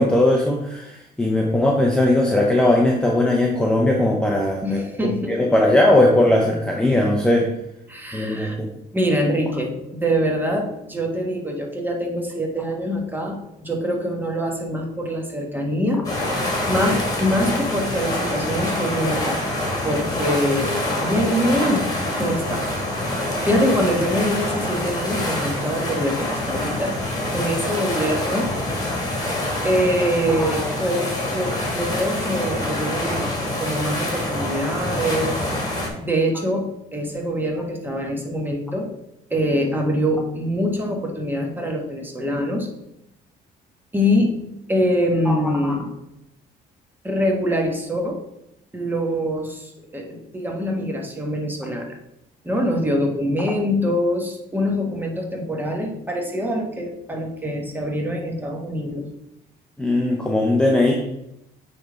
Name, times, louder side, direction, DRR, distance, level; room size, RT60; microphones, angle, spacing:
voice 1, 0.0-7.5 8.1-8.7 45.3-45.4 59.8-60.9, left 1 dB, 5° left, -1 dB, 0.7 m, -19 dB
voice 2, 4.6-5.4 7.9-8.5 8.9-16.1 16.7-19.4 19.8-21.8 22.2-22.6 23.4-27.0 27.2-28.6 29.6-35.4 36.0-38.9 39.3-42.7 43.9-44.3 44.7-45.9 47.0-48.2 48.7-52.0 52.4-59.1, equal, 10° right, 1 dB, 1.3 m, -24 dB
sound 1, 16.0-35.9, left 1 dB, 20° left, 2.0 m, -26 dB
8.5 x 3.5 x 3.9 m, 0.84 s
cardioid pair, 110°, 17 cm